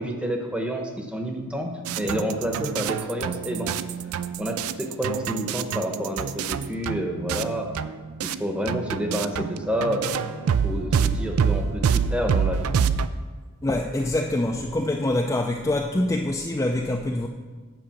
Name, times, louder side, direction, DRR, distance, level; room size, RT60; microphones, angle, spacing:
voice 1, 0.0-3.8 4.4-7.7 8.2-12.7, equal, 5° right, 2 dB, 0.8 m, -29 dB
sound 1, 1.8-8.4 8.7-13.1, right 6 dB, 70° right, 0.3 m, -27 dB
voice 2, 13.6-17.3, left 1 dB, 15° left, 2 dB, 0.4 m, -25 dB
9.0 x 4.9 x 7.1 m, 1.4 s
head